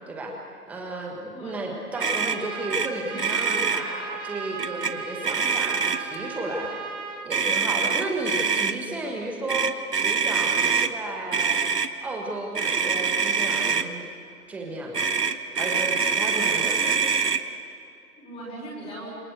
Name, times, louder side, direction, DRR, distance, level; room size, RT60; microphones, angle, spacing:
voice 1, 0.7-6.8 7.2-11.6 12.0-14.0 14.5-15.1 15.5-17.1, right 2 dB, 5° right, 1 dB, 1.5 m, -33 dB
voice 2, 1.3-1.8 16.2-17.0 18.2-19.2, right 1 dB, 10° left, -5 dB, 5.0 m, -39 dB
Trumpet, 1.9-7.3, right 4 dB, 50° right, 4.2 m, -36 dB
Motor vehicle (road), 2.0-2.4 2.7-2.9 3.1-3.8 4.6-4.9 5.2-6.1 7.3-8.7 9.5-10.9 11.3-11.9 12.5-13.9 14.9-17.4, right 5 dB, 80° right, 1.8 m, -24 dB
28.0 x 24.0 x 8.0 m, 2.5 s
figure-of-eight pair, 155°, 47 cm